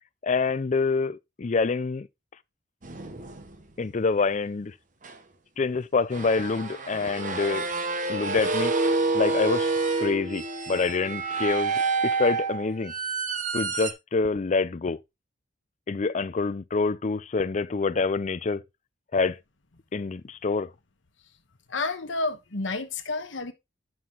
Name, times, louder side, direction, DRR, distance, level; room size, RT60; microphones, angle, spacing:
voice 1, 0.2-2.1 3.8-4.7 5.6-7.7 8.1-8.7 9.1-9.7 10.0-12.9 13.5-15.0 15.9-18.6 19.1-19.4 19.9-20.7, left 4 dB, 40° left, 0.4 m, -26 dB
sound 1, 2.8-3.6 5.0-5.1 6.1-13.9, right 3 dB, 40° right, 1.2 m, -28 dB
voice 2, 21.7-23.5, left 3 dB, 70° left, 1.2 m, -30 dB
9.5 x 6.0 x 3.8 m
head